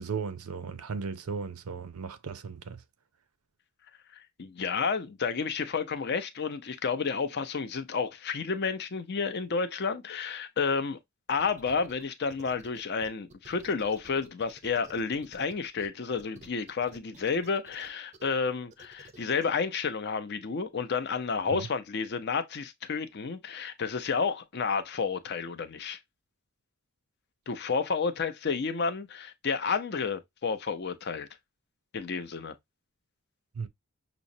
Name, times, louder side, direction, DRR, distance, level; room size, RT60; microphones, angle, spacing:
voice 1, 0.0-2.8 21.5-21.7 33.5-33.7, right 5 dB, 85° right, 0.5 m, -36 dB
voice 2, 4.4-11.0 11.3-26.0 27.5-31.3 31.9-32.5, left 5 dB, 50° left, 0.5 m, -31 dB
sound 1, 11.3-12.0 12.3-15.9 16.2-18.3 18.7-19.5, right 3 dB, 30° right, 0.5 m, -52 dB
6.0 x 2.0 x 2.6 m
head